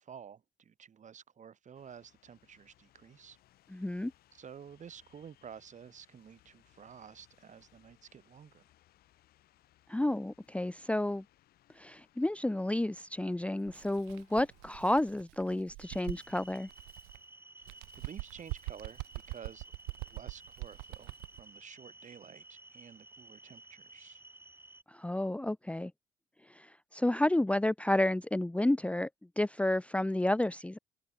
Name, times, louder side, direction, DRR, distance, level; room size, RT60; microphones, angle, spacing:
voice 1, 0.0-3.4 4.3-8.6 17.6-19.0 19.3-19.7 20.0-24.2, right 7 dB, 50° right, 2.0 m, -51 dB
sound 1, 1.7-14.8, left 14 dB, 70° left, 5.8 m, -67 dB
voice 2, 3.7-4.1 9.9-11.2 11.8-16.7 24.9-25.9 26.5-29.1 29.4-30.8, left 1 dB, 10° left, 0.8 m, -31 dB
Bird, 13.6-17.2 17.6-21.4, right 37 dB, 80° right, 0.4 m, -44 dB
sound 2, 15.8-24.8, right 2 dB, 15° right, 5.0 m, -55 dB
open air
hypercardioid pair, 50°, 16 cm